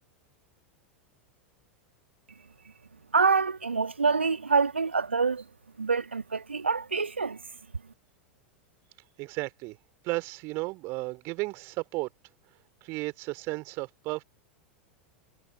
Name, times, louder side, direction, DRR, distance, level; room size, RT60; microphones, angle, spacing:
voice 1, 3.1-5.4 5.8-7.4, right 4 dB, 80° right, 1.6 m, -26 dB
voice 2, 9.2-9.8 10.0-12.1 12.8-14.2, right 24 dB, 40° right, 3.3 m, -34 dB
figure-of-eight pair, 90°, 6 cm